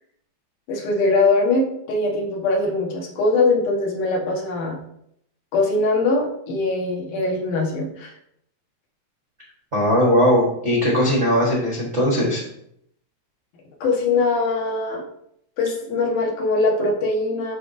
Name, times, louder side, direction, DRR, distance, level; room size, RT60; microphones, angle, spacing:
voice 1, 0.7-4.8 5.5-8.1 13.8-15.0 15.6-17.6, left 3 dB, 80° left, -2 dB, 3.0 m, -22 dB
voice 2, 9.7-12.4, equal, 70° right, -4 dB, 0.6 m, -19 dB
12.0 x 4.0 x 2.6 m, 0.74 s
omnidirectional pair, 3.6 m